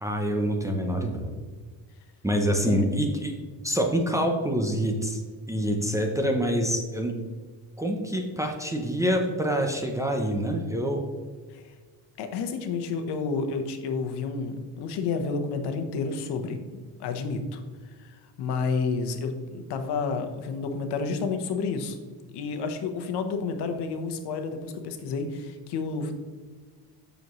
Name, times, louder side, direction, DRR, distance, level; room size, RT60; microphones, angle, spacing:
voice 1, 0.0-1.4 2.2-3.3 3.6-5.2 5.5-7.1 7.8-11.0, equal, 10° right, 2 dB, 0.5 m, -26 dB
voice 2, 12.2-17.6 18.0-22.0 22.3-26.1, left 4 dB, 70° left, 6 dB, 1.1 m, -30 dB
8.2 x 6.4 x 3.1 m, 1.5 s
cardioid pair, 160°, 41 cm